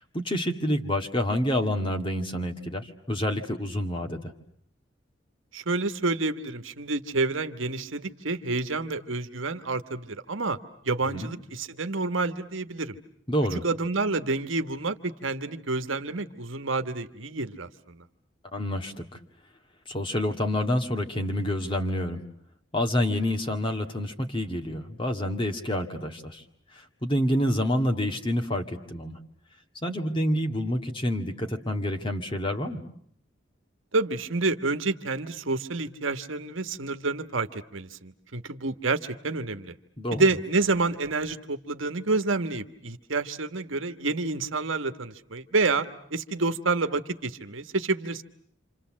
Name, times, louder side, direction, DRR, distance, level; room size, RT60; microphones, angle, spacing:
voice 1, 0.1-4.3 11.1-11.3 13.3-13.6 18.5-19.0 19.9-22.2 22.7-26.4 26.7-29.1 29.8-32.8 40.0-40.3, left 1 dB, 25° left, 4 dB, 2.0 m, -28 dB
voice 2, 5.5-10.6 10.8-13.0 13.5-18.0 33.9-39.7 40.1-45.9 46.1-48.2, right 3 dB, 75° right, 9 dB, 1.3 m, -28 dB
28.0 x 27.5 x 7.5 m, 0.66 s
head